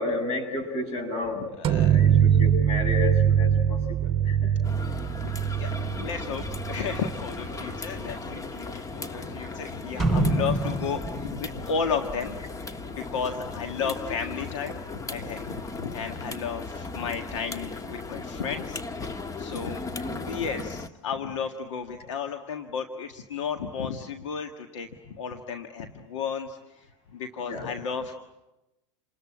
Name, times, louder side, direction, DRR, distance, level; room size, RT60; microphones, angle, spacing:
voice 1, 0.0-4.5 19.7-20.2 27.5-27.7, left 3 dB, 40° left, 6 dB, 7.6 m, -32 dB
voice 2, 1.6-2.0 4.2-4.4 5.2-18.8 19.3-19.8 20.2-28.1, left 6 dB, 80° left, 6 dB, 1.8 m, -33 dB
sound 1, 1.6-7.2, right 9 dB, 35° right, 1.0 m, -23 dB
sound 2, 4.6-20.9, left 3 dB, 20° left, 1.3 m, -37 dB
sound 3, 10.0-12.8 13.1-13.2, right 2 dB, ahead, 6.6 m, -27 dB
28.5 x 20.5 x 8.8 m, 0.97 s
hypercardioid pair, 105°, 16 cm